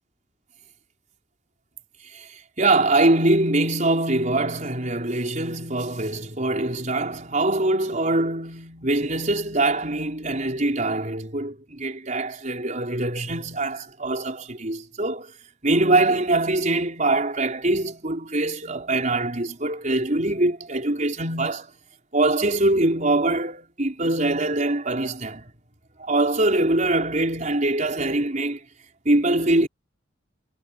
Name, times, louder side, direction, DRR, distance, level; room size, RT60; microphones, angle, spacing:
voice 1, 2.6-15.3 15.6-21.7 22.1-25.5 26.0-28.6 29.0-29.7, right 2 dB, 40° right, 4.7 m, -23 dB
head